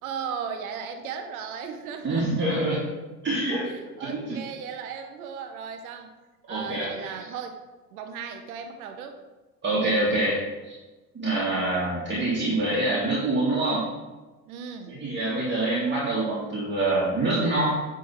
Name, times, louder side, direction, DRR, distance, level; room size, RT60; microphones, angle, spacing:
voice 1, 0.0-2.4 3.7-6.2 6.5-7.6 7.9-9.2 14.5-15.0, right 6 dB, 65° right, 6 dB, 1.1 m, -36 dB
voice 2, 2.0-2.9 3.2-4.4 6.5-7.3 9.6-10.8 11.1-13.9 14.9-17.9, right 2 dB, 25° right, -6 dB, 2.3 m, -26 dB
10.0 x 4.0 x 5.8 m, 1.2 s
figure-of-eight pair, 70°, 46 cm